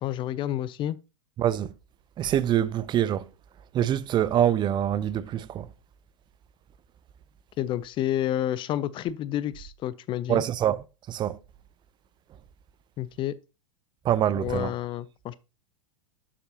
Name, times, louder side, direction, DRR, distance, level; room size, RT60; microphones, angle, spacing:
voice 1, 0.0-1.0 7.6-10.4 13.0-13.3 14.3-15.4, left 12 dB, 30° left, 0.5 m, -29 dB
voice 2, 2.2-3.2 3.7-5.7 10.3-10.8 11.1-11.4 14.1-14.7, right 10 dB, 25° right, 0.6 m, -25 dB
11.0 x 7.5 x 2.8 m
figure-of-eight pair, 90°, 17 cm